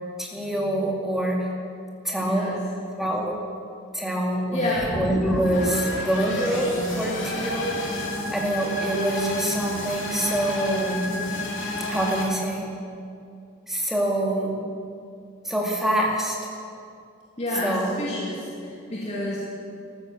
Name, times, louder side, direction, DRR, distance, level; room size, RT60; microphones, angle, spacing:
voice 1, 0.2-1.5 2.0-2.5 2.9-3.4 3.9-7.7 8.3-11.1 11.9-12.7 13.7-14.7 15.4-16.5 17.6-18.0, right 1 dB, ahead, -2 dB, 2.3 m, -25 dB
voice 2, 2.2-2.7 4.5-5.0 17.4-19.4, left 1 dB, 35° left, -6 dB, 2.6 m, -29 dB
sound 1, 4.7-12.3, left 1 dB, 65° left, 2.8 m, -30 dB
14.0 x 12.5 x 7.5 m, 2.4 s
head